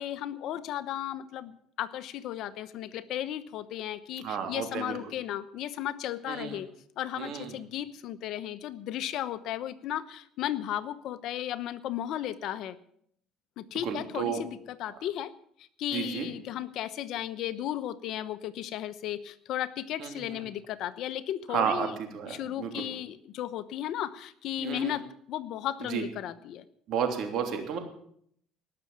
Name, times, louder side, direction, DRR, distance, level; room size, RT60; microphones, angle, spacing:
voice 1, 0.0-6.7 7.0-12.8 13.6-15.3 15.6-22.0 22.3-26.6, left 12 dB, 65° left, 13 dB, 0.9 m, -35 dB
voice 2, 4.2-5.0 6.3-6.6 7.2-7.5 13.8-14.4 15.9-16.3 20.0-20.4 21.5-21.9 22.1-22.8 24.6-25.0 25.9-26.0 26.9-27.8, right 7 dB, 60° right, 4 dB, 3.0 m, -32 dB
19.0 x 6.9 x 7.3 m, 0.67 s
cardioid pair, 110°, 0 cm